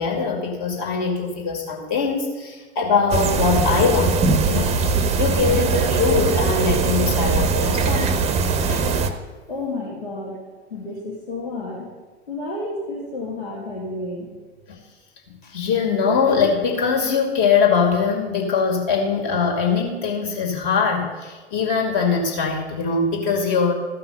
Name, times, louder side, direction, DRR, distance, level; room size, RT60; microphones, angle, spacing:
voice 1, 0.0-4.8 5.2-8.2 8.7-8.8 14.7-14.8 15.3-23.7, left 5 dB, 40° left, 1 dB, 2.3 m, -22 dB
sound 1, 3.1-9.1, right 4 dB, 20° right, 0.7 m, -21 dB
voice 2, 9.5-10.4 10.7-11.9 12.3-14.3, left 2 dB, 75° left, -4 dB, 2.0 m, -31 dB
14.0 x 5.7 x 5.5 m, 1.3 s
figure-of-eight pair, 90°, 33 cm